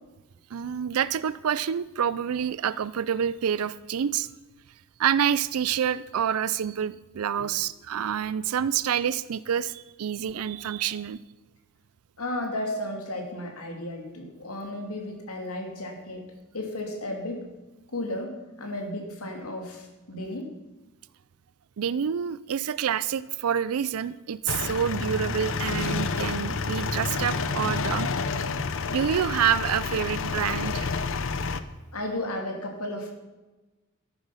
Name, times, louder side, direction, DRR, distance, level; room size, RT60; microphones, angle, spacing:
voice 1, 0.5-4.3 5.0-11.2 21.8-28.1 28.9-30.9, right 8 dB, 75° right, 17 dB, 0.4 m, -27 dB
voice 2, 12.2-16.3 16.5-17.5 17.9-20.5 31.9-33.1, left 1 dB, 80° left, 2 dB, 2.7 m, -34 dB
sound 1, 24.5-31.6, left 4 dB, 65° left, 0.8 m, -29 dB
13.5 x 11.0 x 5.7 m, 1.1 s
head